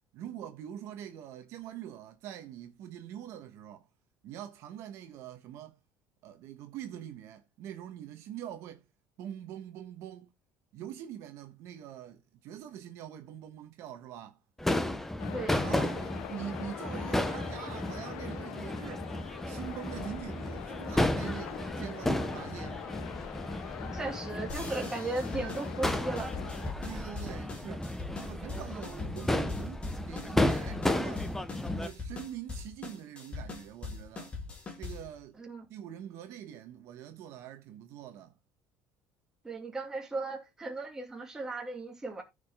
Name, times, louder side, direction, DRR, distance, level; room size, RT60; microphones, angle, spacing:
voice 1, 0.1-3.8 4.2-5.8 6.2-8.8 9.2-10.3 10.7-14.4 15.6-19.1 19.5-22.8 26.8-27.9 28.2-31.3 31.7-34.4 34.8-35.4 35.7-38.3, right 10 dB, 60° right, 1.2 m, -44 dB
Crowd / Fireworks, 14.6-31.9, left 1 dB, 5° left, 0.8 m, -33 dB
sound 1, 15.2-26.7, left 16 dB, 75° left, 0.6 m, -44 dB
voice 2, 15.3-15.9 23.9-26.4 35.4-35.6 39.4-42.2, right 2 dB, 10° right, 2.4 m, -36 dB
sound 2, 24.5-35.2, left 4 dB, 20° left, 2.5 m, -42 dB
14.5 x 5.1 x 3.6 m
cardioid pair, 150°, 5 cm